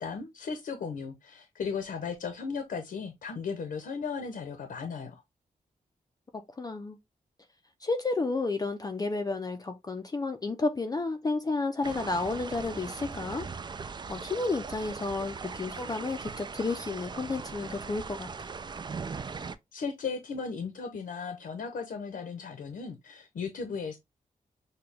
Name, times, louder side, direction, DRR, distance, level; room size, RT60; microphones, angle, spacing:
voice 1, 0.0-5.2 19.7-24.0, left 5 dB, 85° left, 0.9 m, -36 dB
voice 2, 6.3-7.0 7.8-13.5 13.8-18.5, left 3 dB, 25° left, 0.5 m, -32 dB
sound 1, 11.8-19.6, right 5 dB, 30° right, 0.4 m, -39 dB
6.8 x 2.3 x 3.4 m
wide cardioid pair, 135°, 14 cm